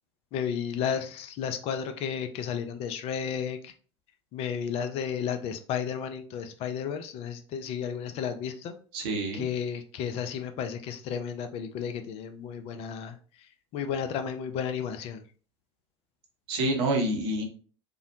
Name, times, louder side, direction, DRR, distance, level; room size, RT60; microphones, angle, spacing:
voice 1, 0.3-3.7 4.3-8.8 9.3-15.2, left 7 dB, 45° left, 8 dB, 0.4 m, -33 dB
voice 2, 8.9-9.5 16.5-17.4, right 1 dB, 60° right, 1 dB, 0.8 m, -27 dB
2.7 x 2.0 x 2.7 m, 0.40 s
figure-of-eight pair, 75°, 15 cm